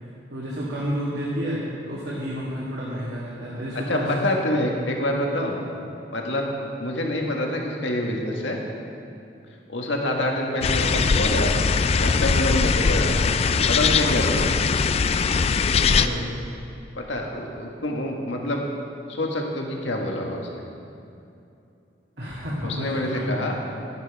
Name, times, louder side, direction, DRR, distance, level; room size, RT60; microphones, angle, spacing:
voice 1, 0.3-4.2 15.9-16.3 22.2-23.3, equal, 65° right, -7 dB, 2.2 m, -30 dB
voice 2, 3.9-5.6 6.1-6.5 6.8-8.6 9.7-11.5 12.0-13.1 13.7-14.5 16.9-18.6 19.1-20.6 22.6-23.5, left 1 dB, 85° left, 0 dB, 1.7 m, -26 dB
sound 1, 10.6-16.1, left 5 dB, 35° left, 0.3 m, -21 dB
12.5 x 10.5 x 4.8 m, 2.7 s
head